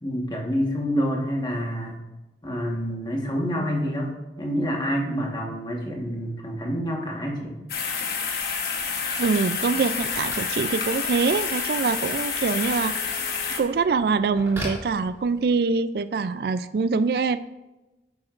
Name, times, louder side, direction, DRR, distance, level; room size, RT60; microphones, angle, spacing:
voice 1, 0.0-2.0 2.4-7.6, equal, 25° left, 0 dB, 1.3 m, -27 dB
sound 1, 7.7-13.6, left 5 dB, 60° left, 1.1 m, -28 dB
Telephone, 7.9-15.7, equal, 15° right, 3.0 m, -42 dB
voice 2, 9.2-13.0 13.6-17.4, right 4 dB, 60° right, 14 dB, 0.3 m, -24 dB
10.5 x 7.6 x 2.5 m, 1.1 s
head